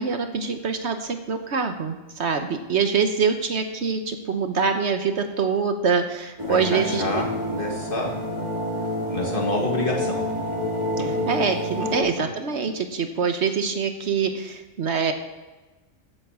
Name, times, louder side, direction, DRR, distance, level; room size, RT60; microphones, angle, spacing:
voice 1, 0.0-7.0 11.3-15.1, right 5 dB, 60° right, 7 dB, 1.2 m, -24 dB
sound 1, 6.4-12.0, left 1 dB, 20° right, 2.3 m, -28 dB
voice 2, 6.5-8.1 9.1-10.2, left 1 dB, 45° left, 0 dB, 2.3 m, -27 dB
9.7 x 8.0 x 7.2 m, 1.2 s
omnidirectional pair, 1.3 m